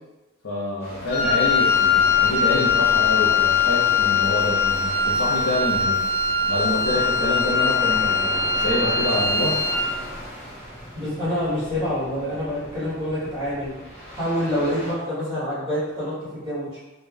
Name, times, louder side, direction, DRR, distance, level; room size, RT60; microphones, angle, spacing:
voice 1, 0.4-6.0 6.5-9.5, left 1 dB, 75° left, -11 dB, 0.9 m, -27 dB
sound 1, 0.8-14.9, equal, 15° left, 1.1 m, -36 dB
Wind instrument woodwind instrument, 1.1-10.0, left 5 dB, 50° left, 0.5 m, -21 dB
voice 2, 10.9-13.7 14.1-16.8, equal, 25° right, -13 dB, 1.5 m, -27 dB
3.1 x 3.0 x 2.4 m, 1.1 s
head